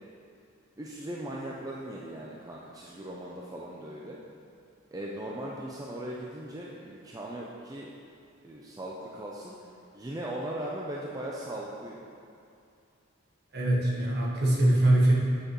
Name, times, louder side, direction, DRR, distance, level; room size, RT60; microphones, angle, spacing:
voice 1, 0.8-4.2 4.9-7.9 8.4-9.5 9.9-12.0, right 1 dB, 20° right, -4 dB, 0.4 m, -38 dB
voice 2, 13.5-15.1, right 1 dB, 55° right, -4 dB, 1.3 m, -22 dB
8.1 x 6.5 x 3.0 m, 2.5 s
head